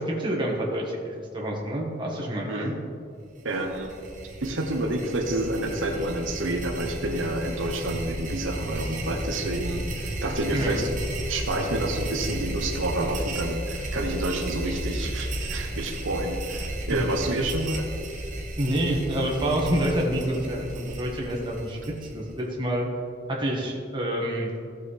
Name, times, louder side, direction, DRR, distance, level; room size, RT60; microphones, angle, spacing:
voice 1, 0.0-2.7 10.5-10.8 16.9-17.0 18.6-22.9 23.3-24.5, right 1 dB, 25° right, -2 dB, 1.6 m, -28 dB
voice 2, 2.5-2.8 3.4-3.9 4.4-10.9 11.3-17.9, right 1 dB, 80° right, 3 dB, 1.0 m, -29 dB
sound 1, 3.4-22.4, right 1 dB, 40° right, 1.3 m, -34 dB
15.5 x 6.8 x 3.3 m, 2.4 s
head